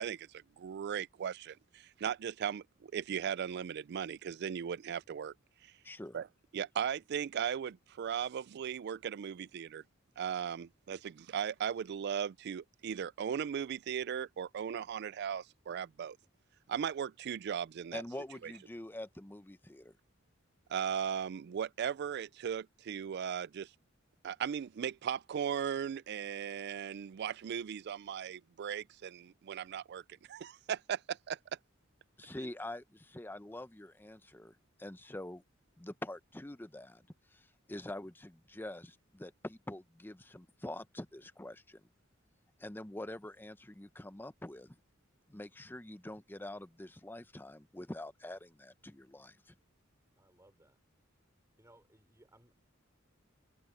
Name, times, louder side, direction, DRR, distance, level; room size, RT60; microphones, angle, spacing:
voice 1, 0.0-5.3 5.6-5.7 6.1-6.3 6.5-9.8 10.2-16.2 16.7-18.0 18.4-18.5 20.7-23.7 24.2-31.4, right 8 dB, 55° right, 0.3 m, -37 dB
voice 2, 5.8-6.2 17.9-19.9 32.2-35.4 35.8-37.0 37.3-41.8 42.6-44.8 45.3-49.5, left 1 dB, 10° left, 0.7 m, -45 dB
voice 3, 50.2-50.8 51.1-51.2 51.6-52.5, right 1 dB, 15° right, 4.6 m, -64 dB
head